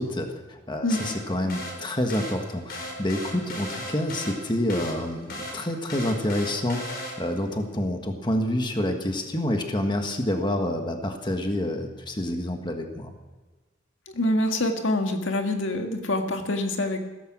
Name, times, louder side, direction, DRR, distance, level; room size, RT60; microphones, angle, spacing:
voice 1, 0.0-13.1, left 1 dB, 25° left, 4 dB, 1.5 m, -28 dB
sound 1, 0.9-7.5, left 1 dB, 50° left, 4.3 m, -37 dB
voice 2, 14.1-17.0, left 1 dB, 80° left, 4 dB, 1.8 m, -25 dB
16.5 x 14.5 x 6.1 m, 1.2 s
head